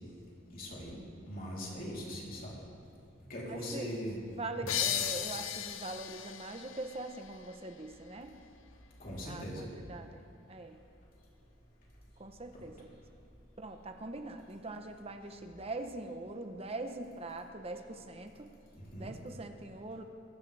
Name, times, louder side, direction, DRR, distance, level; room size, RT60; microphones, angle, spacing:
voice 1, 0.5-1.0 1.2-2.6 3.3-4.2 4.5-4.7 9.0-9.7 12.5-12.6 18.9-19.1, equal, 45° left, -5 dB, 3.5 m, -40 dB
voice 2, 3.5-3.9 4.4-8.4 9.2-10.2 10.5-10.8 12.2-13.0 13.6-18.5 19.0-20.0, right 2 dB, 30° right, 6 dB, 0.9 m, -42 dB
sound 1, 4.7-8.1, left 10 dB, 80° left, 0.7 m, -37 dB
22.0 x 14.0 x 3.4 m, 2.7 s
head